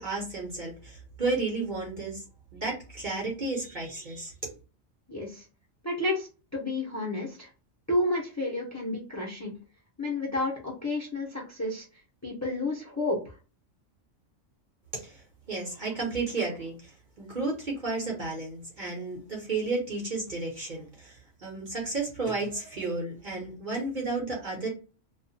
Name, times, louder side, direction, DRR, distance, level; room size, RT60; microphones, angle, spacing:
voice 1, 0.0-2.2 2.5-4.5 14.9-24.7, right 3 dB, 45° right, -2 dB, 0.9 m, -33 dB
voice 2, 5.1-5.4 5.8-7.5 7.9-9.5 10.0-11.9 12.2-13.2, left 2 dB, 15° left, -2 dB, 0.6 m, -31 dB
2.4 x 2.3 x 2.7 m, 0.32 s
omnidirectional pair, 1.3 m